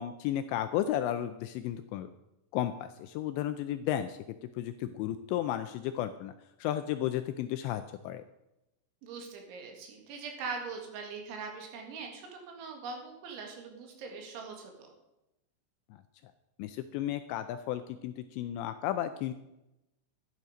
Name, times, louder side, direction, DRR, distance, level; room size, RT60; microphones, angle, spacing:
voice 1, 0.0-2.1 2.5-4.2 4.6-6.3 6.6-8.2 16.6-19.3, left 12 dB, 85° left, 10 dB, 2.6 m, -33 dB
voice 2, 9.0-14.9, right 4 dB, 75° right, 2 dB, 4.3 m, -42 dB
12.5 x 11.0 x 5.1 m, 0.92 s
omnidirectional pair, 5.6 m